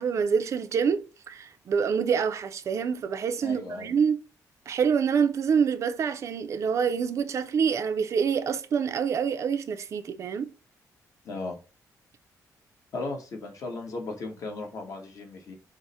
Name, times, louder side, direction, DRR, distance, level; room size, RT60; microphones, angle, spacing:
voice 1, 0.0-4.2 4.7-10.5, right 6 dB, 50° right, 0.4 m, -26 dB
voice 2, 3.4-3.9 11.2-11.6 12.9-15.6, left 3 dB, 55° left, 1.1 m, -36 dB
4.7 x 2.1 x 4.0 m
cardioid pair, 150°, 7 cm